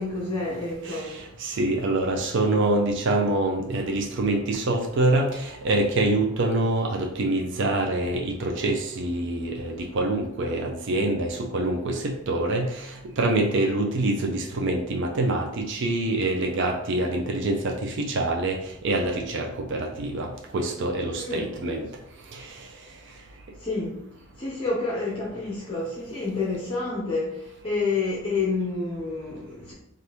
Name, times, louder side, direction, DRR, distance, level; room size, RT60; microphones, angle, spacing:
voice 1, 0.0-1.3 21.2-21.5 23.6-24.0 24.4-29.7, left 3 dB, 25° left, -6 dB, 0.6 m, -29 dB
voice 2, 0.8-18.6 18.8-20.3 20.5-21.9 22.3-22.5, right 2 dB, 60° right, 1 dB, 0.4 m, -25 dB
3.3 x 2.5 x 2.8 m, 0.79 s
head